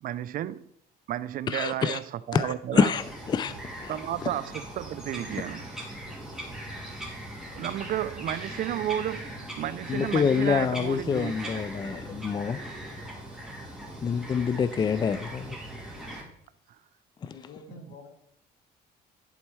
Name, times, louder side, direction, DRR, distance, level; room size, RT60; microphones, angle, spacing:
voice 1, 0.0-0.7 1.1-2.9 3.9-5.7 7.6-11.6 17.8-17.9, right 12 dB, 55° right, 0.4 m, -32 dB
voice 2, 1.5-2.0 2.3-3.6 3.8-3.9 9.9-12.6 14.0-15.6 17.2-17.3, left 6 dB, 25° left, 0.4 m, -26 dB
Bird vocalization bird call bird song, 2.9-16.2, right 1 dB, 5° right, 2.6 m, -40 dB
voice 3, 17.2-18.1, left 4 dB, 80° left, 1.9 m, -47 dB
11.0 x 4.2 x 4.6 m
cardioid pair, 110°, 17 cm